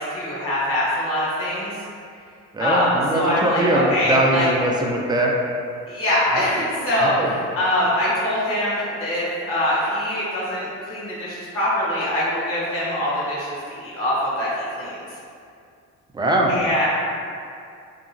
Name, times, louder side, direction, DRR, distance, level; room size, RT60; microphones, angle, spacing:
voice 1, 0.0-1.8 2.6-4.5 5.9-14.5 14.8-14.9 16.5-16.9, left 1 dB, 50° left, -8 dB, 1.1 m, -23 dB
voice 2, 2.5-5.4 6.3-6.4 6.9-7.3 16.1-16.5, right 1 dB, 15° right, -1 dB, 0.3 m, -21 dB
2.8 x 2.3 x 2.5 m, 2.4 s
cardioid pair, 90°, 30 cm